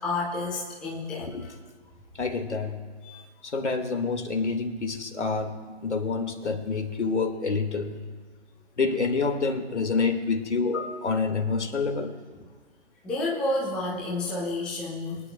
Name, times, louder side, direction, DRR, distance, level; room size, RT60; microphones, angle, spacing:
voice 1, 0.0-1.3 3.0-3.2 13.0-15.3, left 2 dB, 5° left, -5 dB, 0.5 m, -30 dB
voice 2, 1.2-1.5 2.2-2.8 3.4-5.6 5.8-8.0 8.8-12.1, left 4 dB, 75° left, 6 dB, 2.0 m, -27 dB
23.5 x 10.0 x 2.3 m, 1.6 s
figure-of-eight pair, 140°, 35 cm